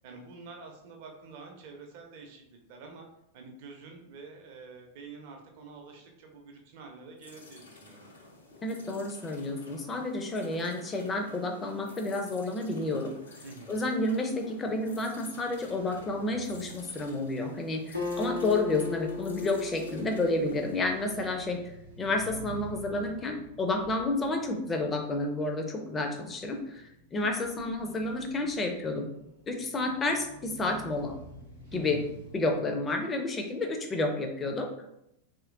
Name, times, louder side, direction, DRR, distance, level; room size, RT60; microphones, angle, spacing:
voice 1, 0.0-3.1 3.3-8.1 13.4-13.8 31.6-32.1, right 4 dB, 50° right, 2 dB, 0.6 m, -47 dB
sound 1, 7.2-20.8, left 2 dB, 70° left, 0.5 m, -52 dB
voice 2, 8.6-13.2 13.7-29.1 29.5-31.2 31.7-32.0 32.3-34.7, left 2 dB, 20° left, 4 dB, 0.5 m, -30 dB
sound 2, 15.4-32.6, right 1 dB, 85° left, 1.5 m, -50 dB
Acoustic guitar, 17.9-21.5, left 3 dB, 90° right, 0.6 m, -37 dB
3.0 x 2.8 x 2.4 m, 0.81 s
figure-of-eight pair, 90°, 0 cm